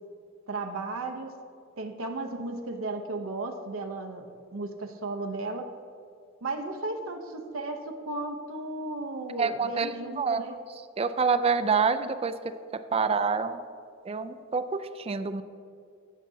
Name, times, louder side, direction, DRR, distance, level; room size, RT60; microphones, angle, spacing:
voice 1, 0.5-1.3 1.8-4.3 4.5-5.7 6.4-10.5, right 2 dB, 85° right, 4 dB, 0.7 m, -34 dB
voice 2, 9.4-9.9 10.2-10.4 11.0-12.3 12.9-13.6 14.0-15.4, right 5 dB, 30° right, 10 dB, 0.4 m, -26 dB
16.0 x 7.3 x 2.7 m, 2.3 s
head